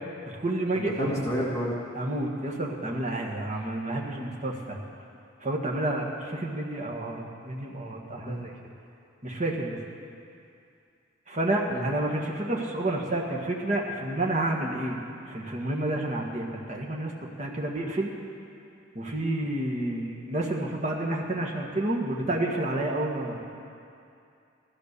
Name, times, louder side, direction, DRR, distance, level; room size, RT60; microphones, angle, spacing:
voice 1, 0.2-1.3 2.0-4.8 5.4-8.5 9.2-9.8 11.3-15.0 15.3-17.1 17.4-18.1 19.0-23.4, right 1 dB, 35° right, -1 dB, 1.7 m, -30 dB
voice 2, 0.8-1.8 8.3-8.4 11.7-11.9, equal, 15° left, -4 dB, 1.8 m, -30 dB
15.0 x 12.5 x 6.8 m, 2.5 s
head